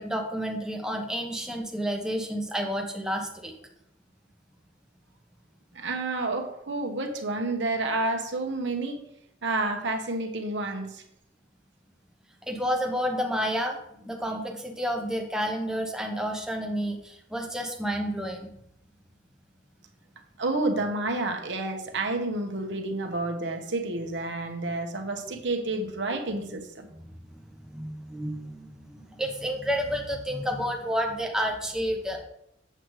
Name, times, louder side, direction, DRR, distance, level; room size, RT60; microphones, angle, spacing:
voice 1, 0.0-3.5 12.5-18.5 26.9-27.1 27.6-32.2, equal, 5° right, 2 dB, 1.0 m, -30 dB
voice 2, 5.7-9.0 9.4-11.0 20.4-26.9 30.8-30.9, right 2 dB, 60° right, 4 dB, 1.1 m, -30 dB
7.9 x 7.7 x 3.2 m, 0.76 s
head